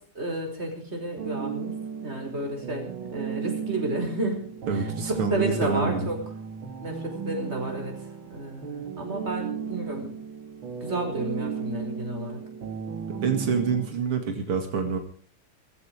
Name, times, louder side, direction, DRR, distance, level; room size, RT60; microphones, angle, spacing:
voice 1, 0.2-1.7 2.0-4.4 4.7-6.2 6.8-7.9 8.3-10.1 10.8-12.4, right 2 dB, 30° right, 3 dB, 5.6 m, -31 dB
sound 1, 1.2-13.9, right 6 dB, 65° right, 2.5 m, -35 dB
voice 2, 4.7-6.1 13.2-15.0, right 5 dB, 80° right, 6 dB, 3.0 m, -27 dB
19.5 x 15.0 x 4.9 m, 0.43 s
omnidirectional pair, 2.4 m